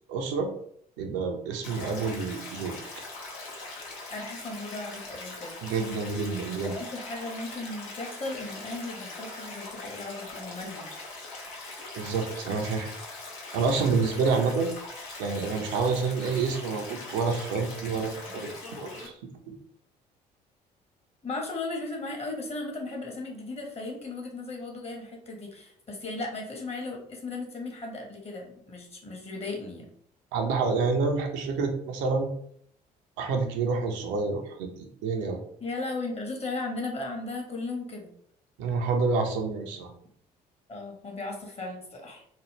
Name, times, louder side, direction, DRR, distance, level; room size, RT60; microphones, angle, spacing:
voice 1, 0.1-0.5 1.0-2.8 5.6-6.7 11.9-12.9 13.5-14.7 15.2-18.5 18.8-19.1 19.5-19.6 30.3-32.3 33.2-34.7 35.0-35.4 38.6-39.9, right 4 dB, 60° right, 3 dB, 0.6 m, -28 dB
Stream, 1.6-19.1, left 2 dB, 65° left, 0.9 m, -41 dB
voice 2, 4.1-5.6 6.5-10.9 21.2-29.9 35.6-38.1 40.7-42.2, left 2 dB, 30° left, 0 dB, 1.2 m, -36 dB
3.0 x 2.2 x 3.2 m, 0.63 s
figure-of-eight pair, 50°, 21 cm